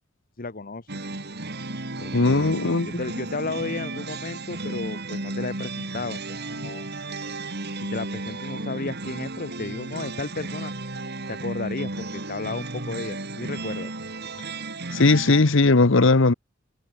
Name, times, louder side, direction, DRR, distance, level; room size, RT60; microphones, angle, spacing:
voice 1, 0.4-0.8 2.0-2.6 2.9-6.8 7.7-10.7 11.3-13.9, left 3 dB, 45° left, 1.2 m, -33 dB
sound 1, 0.9-15.4, right 2 dB, 55° right, 4.2 m, -34 dB
voice 2, 2.1-2.9 14.9-16.3, left 3 dB, 70° left, 1.0 m, -18 dB
head